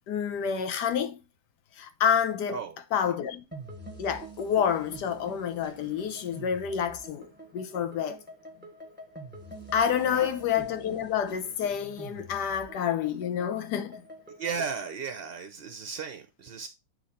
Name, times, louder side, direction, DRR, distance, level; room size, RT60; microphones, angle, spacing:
voice 1, 0.1-1.2 1.8-2.6 2.9-3.4 4.0-8.2 9.7-14.0, left 8 dB, 90° left, 1.4 m, -28 dB
voice 2, 2.5-3.1 10.1-10.3 14.4-16.7, right 6 dB, 60° right, 0.6 m, -36 dB
sound 1, 3.5-14.8, right 2 dB, 5° right, 1.0 m, -46 dB
8.4 x 3.1 x 4.1 m
omnidirectional pair, 1.7 m